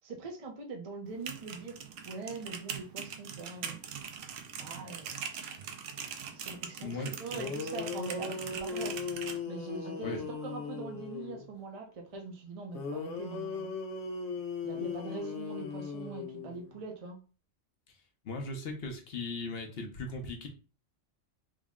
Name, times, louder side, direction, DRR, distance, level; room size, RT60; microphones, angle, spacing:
voice 1, 0.0-1.8 2.0-3.8 4.6-5.6 6.3-9.0 9.5-13.7 14.6-17.2, right 3 dB, 40° right, 2 dB, 0.6 m, -42 dB
sound 1, 1.1-9.4, right 7 dB, 75° right, 0.9 m, -42 dB
voice 2, 6.8-7.1 10.0-10.2 18.2-20.5, left 3 dB, 55° left, 3 dB, 0.9 m, -37 dB
sound 2, 7.3-11.5 12.7-16.8, left 4 dB, 80° left, 1.0 m, -38 dB
3.7 x 2.1 x 3.6 m, 0.36 s
omnidirectional pair, 1.3 m